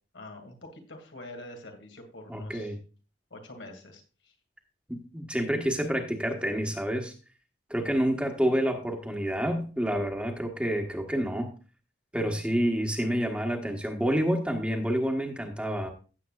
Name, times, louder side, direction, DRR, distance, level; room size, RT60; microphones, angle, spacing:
voice 1, 0.1-2.7 3.3-4.3, left 1 dB, 85° left, 3 dB, 2.4 m, -45 dB
voice 2, 2.3-2.8 4.9-7.1 7.7-11.5 12.1-15.9, equal, 5° right, 3 dB, 1.3 m, -28 dB
16.0 x 7.6 x 2.4 m, 0.35 s
head